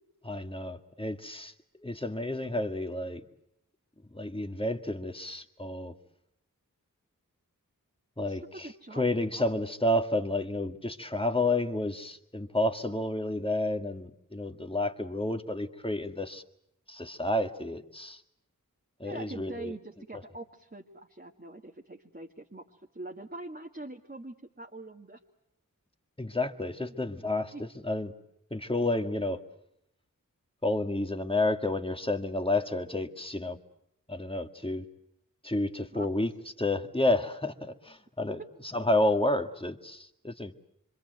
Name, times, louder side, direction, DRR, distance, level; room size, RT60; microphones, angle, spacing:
voice 1, 0.3-1.5 1.8-3.2 4.1-5.9 8.2-8.7 9.0-16.4 16.9-18.2 19.0-19.7 26.2-28.1 28.5-29.4 30.6-33.6 34.1-34.8 35.4-36.3 36.6-38.4 38.7-40.5, left 1 dB, 15° left, 6 dB, 1.9 m, -30 dB
voice 2, 8.3-9.0 19.0-25.2 26.8-27.0 27.5-27.6 35.9-36.1 38.4-38.5, right 2 dB, 30° right, 0 dB, 1.9 m, -44 dB
26.0 x 25.0 x 8.0 m, 0.78 s
wide cardioid pair, 45°, 33 cm